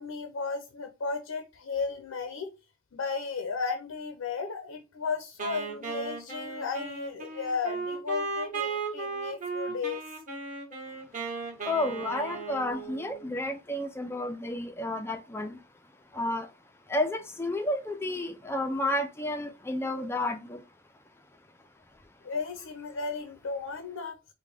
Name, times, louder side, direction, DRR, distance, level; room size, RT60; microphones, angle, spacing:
voice 1, 0.0-2.5 2.9-10.0 22.2-24.2, left 4 dB, 65° left, 0.5 m, -34 dB
Wind instrument woodwind instrument, 5.4-13.3, right 4 dB, 35° right, 1.3 m, -36 dB
voice 2, 11.6-15.6 16.1-16.5 16.9-20.6, left 1 dB, 10° left, 0.3 m, -31 dB
4.9 x 2.2 x 3.3 m
head